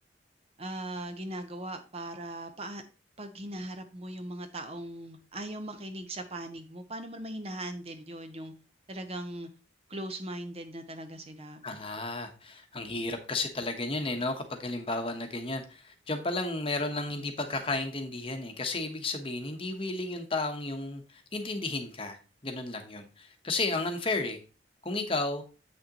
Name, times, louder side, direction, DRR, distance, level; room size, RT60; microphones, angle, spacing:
voice 1, 0.6-2.8 3.2-8.5 8.9-9.5 9.9-11.6, right 1 dB, 30° right, 0.7 m, -39 dB
voice 2, 11.6-22.2 22.4-24.4 24.8-25.4, left 2 dB, 30° left, 1.0 m, -33 dB
7.9 x 6.3 x 2.9 m
head